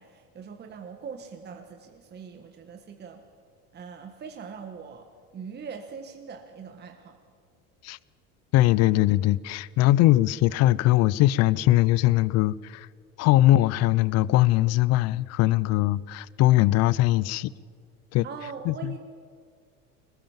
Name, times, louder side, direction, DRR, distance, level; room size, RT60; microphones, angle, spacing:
voice 1, 0.0-3.2 3.7-5.1 5.3-7.2 18.2-19.0, right 6 dB, 35° right, 1.6 m, -41 dB
voice 2, 8.5-12.9 13.2-17.5 18.1-18.2 18.7-19.0, left 15 dB, 55° left, 0.6 m, -21 dB
22.0 x 20.5 x 7.4 m
supercardioid pair, 120°, 31 cm